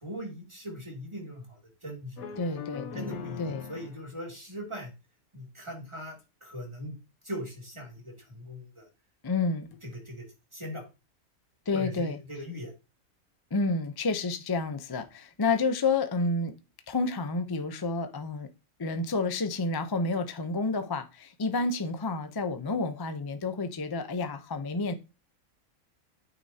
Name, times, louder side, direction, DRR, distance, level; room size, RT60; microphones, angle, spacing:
voice 1, 0.0-2.4 2.9-3.4 3.7-4.9 5.3-7.0 7.2-8.9 9.8-10.3 10.5-10.8 11.7-12.7, equal, 20° right, 2.7 m, -40 dB
sound 1, 2.2-4.1 6.2-6.3 7.6-7.7 8.0-8.1 9.7-10.0, left 5 dB, 90° left, 1.3 m, -40 dB
voice 2, 2.4-3.7 9.2-9.7 11.7-12.2 13.5-16.5 16.9-18.5 18.8-24.9, left 3 dB, 25° left, 0.5 m, -30 dB
8.9 x 6.8 x 2.8 m
omnidirectional pair, 1.5 m